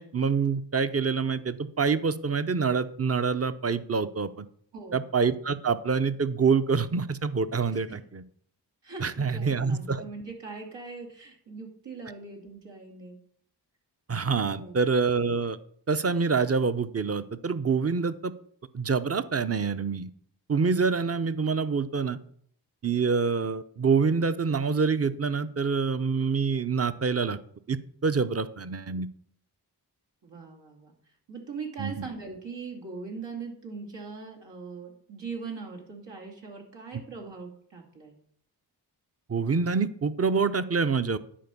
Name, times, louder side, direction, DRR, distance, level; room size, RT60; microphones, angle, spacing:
voice 1, 0.0-4.5 4.9-8.2 9.0-10.0 14.1-15.6 15.9-18.3 18.7-20.1 20.5-22.2 22.8-27.4 27.7-27.8 28.0-29.1 31.8-32.1 39.3-41.2, right 5 dB, 35° right, 13 dB, 0.8 m, -26 dB
voice 2, 4.7-5.0 7.7-8.0 8.8-13.2 14.4-14.8 30.2-30.9 31.3-38.2, right 4 dB, 80° right, 0 dB, 2.7 m, -41 dB
10.5 x 4.5 x 6.9 m, 0.62 s
cardioid pair, 40°, 42 cm